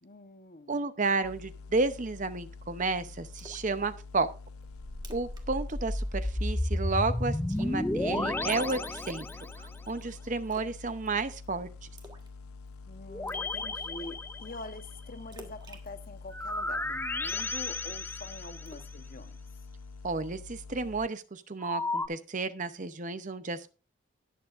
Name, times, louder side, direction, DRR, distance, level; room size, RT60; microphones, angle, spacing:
voice 1, 0.0-0.8 12.9-19.4, left 2 dB, 40° left, 1.1 m, -45 dB
voice 2, 0.7-4.3 5.1-9.3 9.6-11.7 20.0-23.7, right 3 dB, 35° right, 0.7 m, -32 dB
sound 1, 1.2-21.1, left 4 dB, 90° left, 0.6 m, -47 dB
Splash splatter, 3.4-3.7 4.1-4.2 4.6-4.7 5.0-5.4 5.7-5.9 6.2-6.6 7.5-7.9 8.7-9.6 10.5-10.8 11.1-11.4 12.0-12.4 12.7-12.8 13.3-13.6 15.3-16.6 17.3-18.2 18.7-18.9, right 1 dB, 20° right, 1.5 m, -51 dB
sound 2, 4.8-9.8 13.1-14.9 16.3-18.9 21.6-22.1, left 2 dB, 10° left, 0.4 m, -33 dB
19.0 x 7.1 x 2.5 m
head